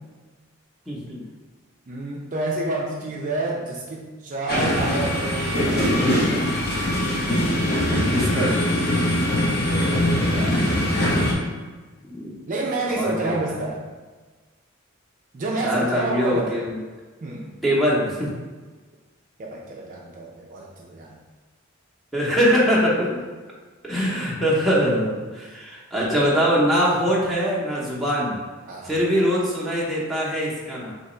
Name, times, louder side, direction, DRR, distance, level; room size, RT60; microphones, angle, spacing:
voice 1, 0.9-1.2 8.1-8.6 12.1-12.3 13.0-13.4 15.6-16.8 17.6-18.3 22.1-23.2 23.9-28.4 28.8-30.9, equal, ahead, -6 dB, 0.8 m, -22 dB
voice 2, 1.9-6.5 9.6-10.7 12.5-13.8 15.3-16.6 17.2-17.5 19.4-21.2 28.7-28.9, right 2 dB, 40° right, -2 dB, 0.4 m, -29 dB
sound 1, 4.5-11.3, left 1 dB, 50° left, 0.9 m, -22 dB
3.5 x 2.9 x 4.3 m, 1.3 s
head